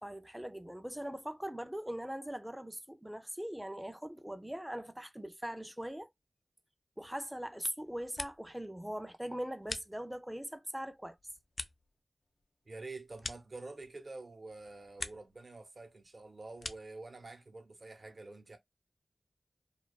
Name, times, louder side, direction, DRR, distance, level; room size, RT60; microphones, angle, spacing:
voice 1, 0.0-6.1 7.0-11.2, equal, 5° right, 0.3 m, -41 dB
sound 1, 7.8-8.7 9.0-10.4 10.9-14.1 14.5-15.4 15.7-17.0, left 3 dB, 65° left, 0.3 m, -46 dB
voice 2, 12.7-18.6, right 3 dB, 55° right, 0.7 m, -47 dB
2.5 x 2.2 x 2.2 m
wide cardioid pair, 70°, 0 cm